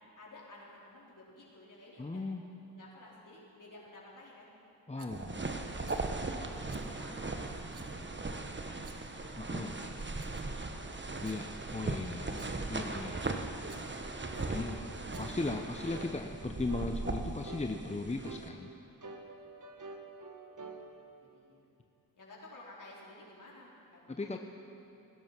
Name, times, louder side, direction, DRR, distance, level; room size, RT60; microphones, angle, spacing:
voice 1, 0.2-2.3 2.7-4.5 4.9-6.0 6.3-6.6 6.8-10.8 12.1-13.3 13.6-13.7 14.2-14.6 19.3-19.5 20.7-21.6 22.1-24.4, left 2 dB, 50° left, -5 dB, 4.5 m, -55 dB
voice 2, 2.0-2.4 4.9-5.4 9.4-9.7 11.2-12.2 12.7-13.4 14.5-18.7 24.1-24.4, left 2 dB, 15° left, 4 dB, 0.8 m, -37 dB
Rattle, 5.0-5.3 5.8-6.1 6.7-6.9 7.7-7.9 8.7-9.2 9.9-10.6 11.1-11.4 12.2-12.7 13.7-13.9 14.9-15.5, right 7 dB, 75° right, 1.3 m, -58 dB
sound 1, 5.1-18.5, right 3 dB, 25° right, 1.3 m, -39 dB
sound 2, 13.6-13.8 14.3-14.6 15.1-15.3 15.9-16.1 16.7-16.9 17.4-17.7 18.2-18.5 19.0-20.8, right 3 dB, 50° right, 1.8 m, -46 dB
18.5 x 11.0 x 6.0 m, 2.8 s
cardioid pair, 50°, 40 cm